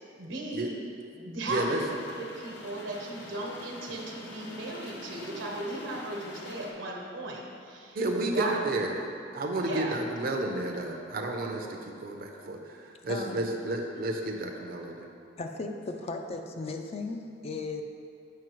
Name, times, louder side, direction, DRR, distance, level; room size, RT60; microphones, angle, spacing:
voice 1, 0.2-0.7 1.1-1.8 2.2-8.0 8.2-8.7 9.6-9.9 13.2-13.4, right 2 dB, 85° right, -1 dB, 1.1 m, -36 dB
voice 2, 1.5-1.8 8.0-9.0 9.3-15.1, right 2 dB, 50° right, 2 dB, 0.6 m, -31 dB
sound 1, 1.7-6.7, left 1 dB, 60° left, 0.8 m, -45 dB
voice 3, 13.1-13.5 15.4-17.8, left 3 dB, 35° left, 4 dB, 0.4 m, -36 dB
7.5 x 5.5 x 3.0 m, 2.5 s
head